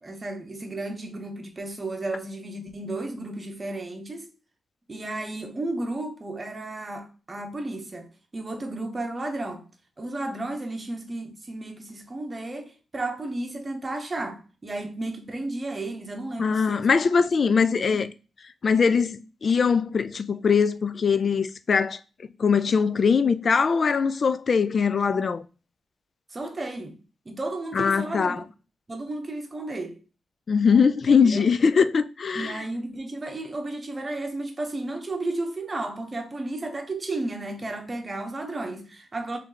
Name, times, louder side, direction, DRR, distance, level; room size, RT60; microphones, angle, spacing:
voice 1, 0.0-4.3 4.9-8.1 8.3-9.7 10.0-16.9 17.5-18.0 26.3-27.0 27.3-28.4 28.9-30.0 31.3-31.5 32.3-39.4, right 2 dB, 25° right, 0.9 m, -33 dB
voice 2, 16.4-18.1 18.6-22.0 22.4-25.5 27.7-28.4 30.5-32.6, left 5 dB, 45° left, 0.3 m, -21 dB
3.3 x 3.0 x 3.7 m
cardioid pair, 110°, 0 cm